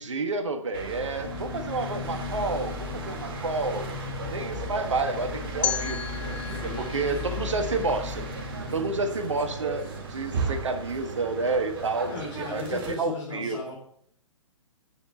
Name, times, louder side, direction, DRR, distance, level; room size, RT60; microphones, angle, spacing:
voice 1, 0.0-3.9 4.2-6.1 6.6-8.2 8.7-12.1 12.4-13.6, right 3 dB, 65° right, 7 dB, 1.5 m, -29 dB
sound 1, 0.7-13.0, right 2 dB, 45° right, 2.0 m, -35 dB
sound 2, 1.2-8.9, left 9 dB, 40° left, 1.5 m, -40 dB
sound 3, 5.6-8.6, left 8 dB, 10° left, 0.3 m, -34 dB
voice 2, 6.5-7.7 12.1-13.7, left 2 dB, 60° left, -5 dB, 3.8 m, -38 dB
9.6 x 7.0 x 7.2 m, 0.69 s
figure-of-eight pair, 120°, 17 cm